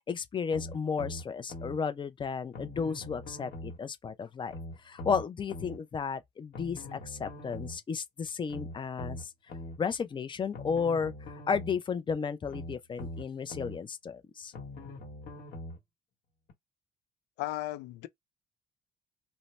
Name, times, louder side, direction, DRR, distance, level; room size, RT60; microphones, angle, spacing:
voice 1, 0.1-4.5 4.8-9.3 9.8-14.5, left 6 dB, 30° left, 0.5 m, -33 dB
sound 1, 0.5-1.8 2.5-3.8 4.5-5.8 6.5-7.8 8.5-9.8 10.5-11.8 12.5-13.8 14.5-15.8 16.5-16.6, left 1 dB, 65° left, 1.2 m, -42 dB
voice 2, 17.4-18.1, left 17 dB, 90° left, 0.5 m, -35 dB
2.7 x 2.0 x 3.2 m
cardioid pair, 110°, 17 cm